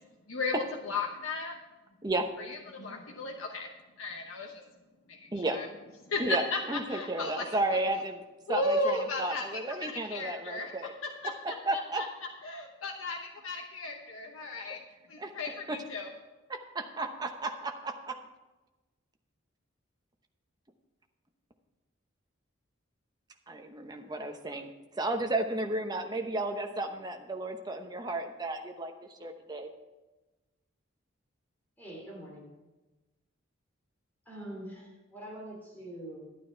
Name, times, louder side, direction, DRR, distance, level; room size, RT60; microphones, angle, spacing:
voice 1, 0.8-1.5 2.5-3.7 4.0-4.6 5.1-5.7 6.1-6.6 6.9-7.6 8.5-10.9 11.2-11.5 12.0-12.1 12.4-14.8 15.1-16.1, left 2 dB, 80° left, 1 dB, 1.1 m, -35 dB
voice 2, 6.2-8.2 8.5-10.9 11.6-12.0 15.2-15.3 15.7-15.8 16.5-18.2 23.5-28.9 29.2-29.7, right 2 dB, 20° right, 4 dB, 0.9 m, -33 dB
voice 3, 31.8-32.5 34.2-36.2, right 1 dB, 10° left, -2 dB, 3.0 m, -44 dB
12.0 x 9.2 x 4.5 m, 1.1 s
head